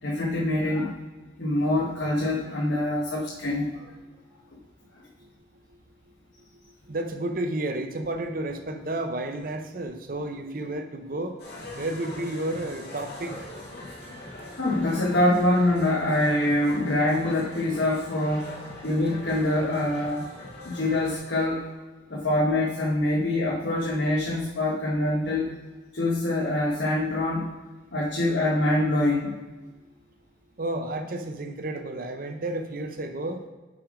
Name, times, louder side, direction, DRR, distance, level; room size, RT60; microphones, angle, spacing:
voice 1, 0.0-0.9 1.4-3.9 14.5-18.6 18.8-20.3 20.6-21.7 22.1-25.5 25.9-27.5 27.9-29.3, left 1 dB, 80° left, -5 dB, 1.3 m, -25 dB
voice 2, 6.9-11.4 11.8-13.4 30.6-33.4, right 1 dB, 50° right, 6 dB, 0.6 m, -31 dB
sound 1, 11.4-21.2, left 2 dB, 60° left, 2.2 m, -41 dB
5.9 x 5.1 x 5.0 m, 1.3 s
head